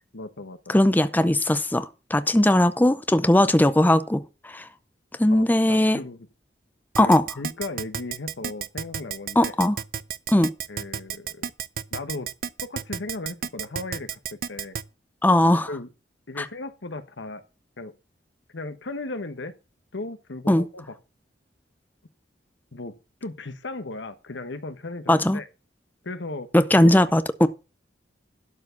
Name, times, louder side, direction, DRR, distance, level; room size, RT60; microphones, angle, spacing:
voice 1, 0.1-0.7 5.3-6.3 7.0-9.5 10.7-11.5 11.9-12.3 12.6-14.2 14.5-14.8 15.7-15.9 16.3-17.4 17.8-17.9 18.5-19.5 19.9-20.9 22.7-22.9 23.2-25.5 26.0-26.5 26.8-26.9, left 2 dB, 85° left, 1.1 m, -36 dB
voice 2, 0.7-4.7 5.2-6.0 7.0-7.2 9.4-9.8 10.3-10.5 15.2-15.7 16.4-16.5 20.5-20.7 25.1-25.4 26.5-27.5, left 1 dB, 10° left, 0.5 m, -19 dB
Keyboard (musical), 7.0-14.8, right 8 dB, 50° right, 0.5 m, -31 dB
12.0 x 4.7 x 7.0 m
head